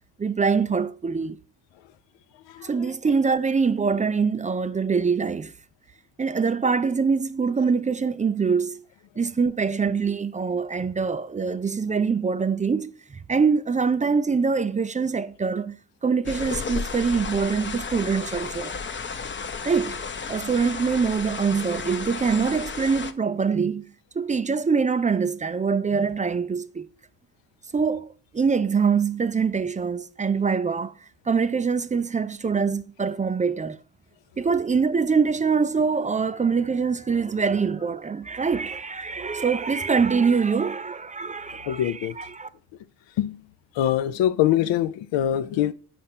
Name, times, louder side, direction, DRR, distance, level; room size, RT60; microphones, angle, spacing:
voice 1, 0.2-1.4 2.6-5.5 6.2-8.8 9.2-15.8 16.0-18.8 19.6-20.0 20.3-23.9 24.1-26.9 27.7-28.1 28.3-30.9 31.3-33.8 34.4-42.5, right 5 dB, 20° right, 0.3 m, -24 dB
sound 1, 16.3-23.1, left 5 dB, 25° left, 0.6 m, -33 dB
voice 2, 41.7-42.2 43.2-43.4 43.7-45.7, left 11 dB, 75° left, 0.6 m, -23 dB
5.0 x 4.3 x 5.9 m
supercardioid pair, 55°, 45 cm